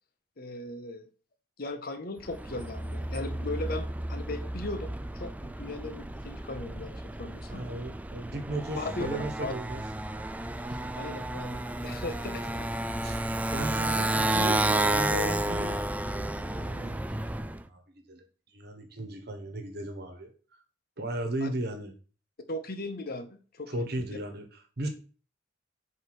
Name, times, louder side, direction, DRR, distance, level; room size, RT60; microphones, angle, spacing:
voice 1, 0.4-1.0 1.6-7.6 8.8-9.5 11.0-12.7 21.4-21.5 22.5-23.9, left 2 dB, 55° left, 8 dB, 0.9 m, -38 dB
Motorcycle, 2.2-17.6, right 1 dB, 10° right, 0.3 m, -32 dB
voice 2, 7.5-9.8 10.7-10.8 12.4-12.5 13.0-13.2 13.5-15.8 16.3-18.2 18.5-20.3 21.0-21.9 23.7-24.9, right 1 dB, 60° right, 6 dB, 1.3 m, -36 dB
4.8 x 4.7 x 6.2 m, 0.39 s
head